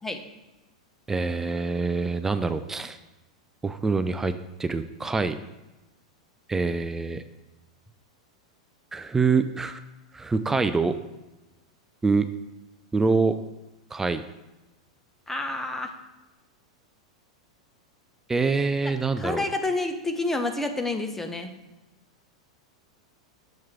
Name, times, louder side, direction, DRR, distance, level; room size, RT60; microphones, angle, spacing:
voice 1, 1.1-3.0 3.6-4.3 4.6-5.4 6.5-7.2 8.9-9.8 10.1-11.0 12.0-12.3 12.9-13.4 13.9-14.2 18.3-19.4, right 4 dB, 10° right, 10 dB, 0.4 m, -25 dB
voice 2, 15.3-15.9 18.8-21.5, left 2 dB, 10° left, 6 dB, 0.8 m, -29 dB
7.2 x 4.6 x 4.8 m, 1.0 s
figure-of-eight pair, 95°, 3 cm